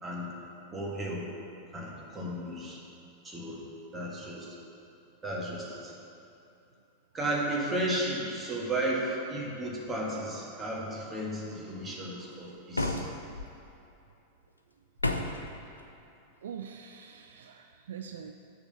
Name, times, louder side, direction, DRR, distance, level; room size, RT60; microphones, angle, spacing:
voice 1, 0.7-1.3 1.7-2.8 3.2-3.6 3.9-4.6 5.2-5.9 7.1-13.0, right 1 dB, 15° right, -3 dB, 1.8 m, -34 dB
sound 1, 12.7-13.5 15.0-15.5, left 2 dB, 85° left, 0.5 m, -31 dB
voice 2, 15.6-15.9 16.4-18.3, right 8 dB, 65° right, 6 dB, 0.3 m, -44 dB
6.9 x 6.1 x 6.9 m, 2.7 s
figure-of-eight pair, 90°, 0 cm